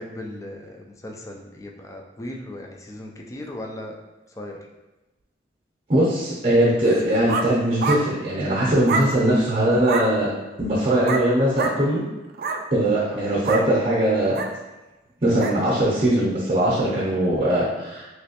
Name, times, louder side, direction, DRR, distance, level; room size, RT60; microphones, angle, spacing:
voice 1, 0.0-3.9 4.3-4.6 13.0-13.2, left 1 dB, 20° left, 1 dB, 0.4 m, -37 dB
voice 2, 5.9-10.3 10.6-12.0 12.7-14.4 15.2-18.0, right 1 dB, 35° right, -5 dB, 0.7 m, -20 dB
sound 1, 6.9-7.5 7.8-8.0 8.9-9.1 9.8-10.1 11.0-11.3 11.6-11.8 12.3-12.6 13.4-13.7 14.3-14.5 15.4-15.6, right 4 dB, 55° right, 0.3 m, -26 dB
3.1 x 2.9 x 2.9 m, 1.1 s
head